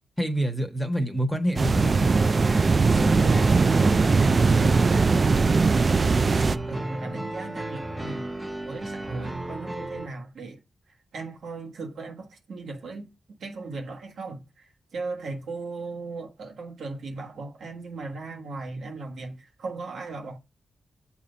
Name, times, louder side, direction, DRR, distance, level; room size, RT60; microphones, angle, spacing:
voice 1, 0.2-2.1 7.0-7.2, right 1 dB, 5° left, 1.4 m, -27 dB
sound 1, 1.6-6.6, right 4 dB, 45° right, 0.4 m, -20 dB
sound 2, 1.8-10.1, right 1 dB, 20° right, 1.1 m, -34 dB
voice 2, 2.9-5.4 6.7-8.3 8.6-10.6 11.1-13.1 13.4-20.4, right 3 dB, 80° right, 1.5 m, -36 dB
7.4 x 2.8 x 5.3 m
cardioid pair, 60°, 0 cm